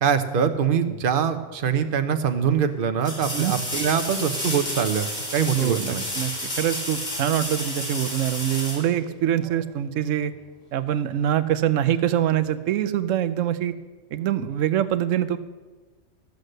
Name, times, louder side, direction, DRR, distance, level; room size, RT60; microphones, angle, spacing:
voice 1, 0.0-6.1, right 7 dB, 50° right, 8 dB, 0.9 m, -23 dB
sound 1, 3.0-9.6 12.5-12.6, left 1 dB, 50° left, 3.6 m, -31 dB
voice 2, 5.5-10.3 10.7-13.7 14.1-15.4, right 11 dB, 85° right, 11 dB, 1.0 m, -24 dB
13.0 x 8.0 x 6.6 m, 1.3 s
omnidirectional pair, 1.3 m